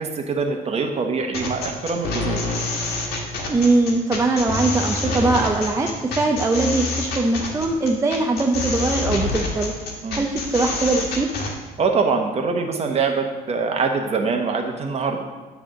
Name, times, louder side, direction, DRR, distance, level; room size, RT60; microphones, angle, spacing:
voice 1, 0.0-2.4 10.0-10.2 11.8-15.2, right 4 dB, 40° right, 3 dB, 1.1 m, -23 dB
sound 1, 1.3-11.5, left 2 dB, 70° left, 1.7 m, -27 dB
voice 2, 3.5-9.7 10.1-11.3, right 2 dB, 20° right, 1 dB, 0.6 m, -21 dB
10.0 x 3.4 x 6.3 m, 1.3 s
cardioid pair, 110°, 17 cm